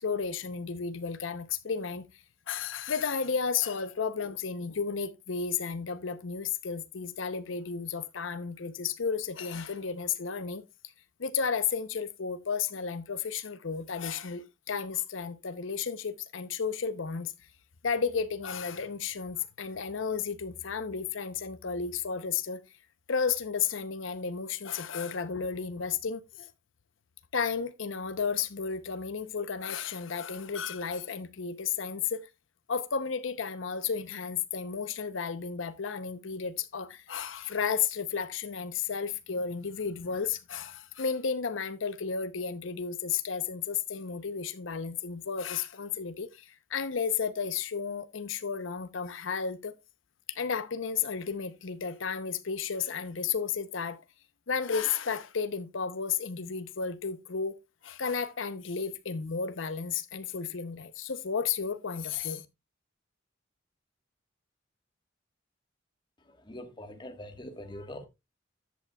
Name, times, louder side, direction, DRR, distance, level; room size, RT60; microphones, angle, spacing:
voice 1, 0.0-2.0 2.5-10.6 11.2-17.3 17.8-22.6 23.1-26.5 27.3-32.3 32.7-49.7 50.3-54.0 54.5-57.6 57.8-62.4, left 6 dB, 90° left, 0.7 m, -33 dB
voice 2, 66.4-68.1, left 1 dB, 25° left, 1.4 m, -43 dB
13.0 x 8.4 x 2.3 m
head